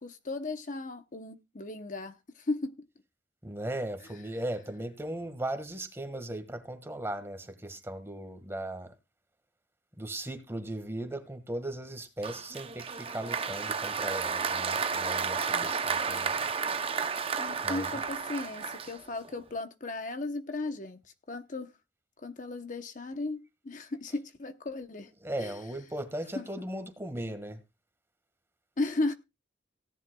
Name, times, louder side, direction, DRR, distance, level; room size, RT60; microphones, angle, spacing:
voice 1, 0.0-2.9 15.5-15.8 17.4-21.0 21.3-21.7 22.2-25.1 25.4-25.5 26.4-26.5 28.8-29.1, left 2 dB, 45° left, 0.8 m, -35 dB
voice 2, 3.4-8.9 10.0-16.5 17.6-17.9 25.2-27.6, right 1 dB, 15° right, 1.6 m, -37 dB
Applause, 12.2-19.3, right 5 dB, 30° right, 0.7 m, -32 dB
17.0 x 11.0 x 2.3 m
head